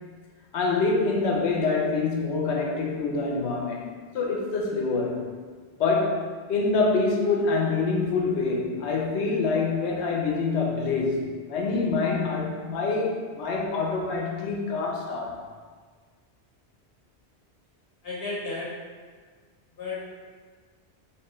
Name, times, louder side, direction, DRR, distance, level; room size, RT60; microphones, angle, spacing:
voice 1, 0.5-3.8 4.1-5.2 5.8-15.3, left 3 dB, 85° left, -1 dB, 1.0 m, -26 dB
voice 2, 18.0-18.8 19.8-20.1, left 3 dB, 60° left, -7 dB, 1.3 m, -33 dB
3.4 x 2.9 x 3.0 m, 1.5 s
omnidirectional pair, 1.1 m